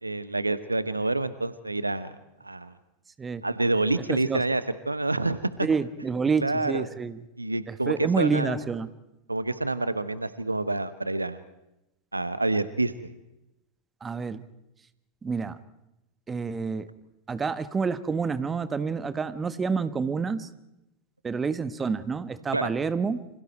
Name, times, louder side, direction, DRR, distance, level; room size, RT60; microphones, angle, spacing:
voice 1, 0.0-2.2 2.4-2.7 3.4-5.7 6.4-6.9 7.4-8.5 9.3-11.4 12.1-13.1 22.5-22.7, right 2 dB, 85° right, 15 dB, 1.2 m, -27 dB
voice 2, 4.1-4.4 5.6-7.2 7.7-8.9 14.0-14.4 15.2-15.6 16.3-16.9 17.3-20.5 21.2-23.2, right 5 dB, 15° right, 14 dB, 1.4 m, -28 dB
29.5 x 26.5 x 4.4 m, 0.89 s
figure-of-eight pair, 90°, 0 cm